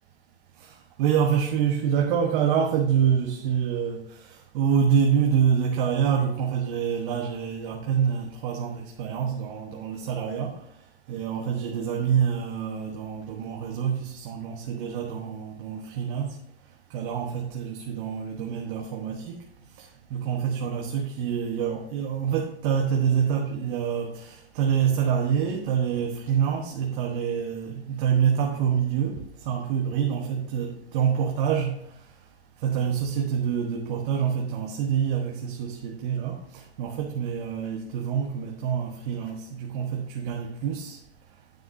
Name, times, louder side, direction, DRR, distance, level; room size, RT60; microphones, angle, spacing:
voice 1, 0.6-10.6 11.1-16.4 16.9-19.4 19.8-31.8 32.6-41.0, right 7 dB, 50° right, 1.2 m, -26 dB
9.3 x 9.1 x 2.7 m
hypercardioid pair, 125°, 33 cm